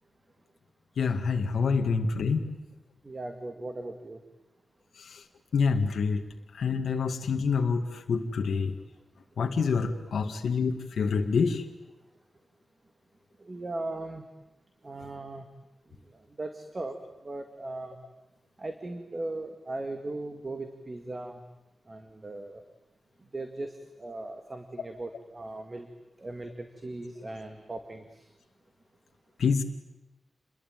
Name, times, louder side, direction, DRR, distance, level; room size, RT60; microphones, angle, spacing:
voice 1, 1.0-2.4 5.0-5.2 5.5-6.2 6.6-8.7 9.4-11.6 29.4-29.6, left 5 dB, 80° left, 3 dB, 2.0 m, -27 dB
voice 2, 3.1-4.2 13.5-14.2 14.8-15.4 16.4-16.9 17.3-18.0 18.6-21.4 21.9-22.6 23.3-23.7 24.0-25.9 26.2-28.0, right 2 dB, 30° right, 6 dB, 1.9 m, -38 dB
29.0 x 22.0 x 9.2 m, 0.93 s
wide cardioid pair, 160°, 0 cm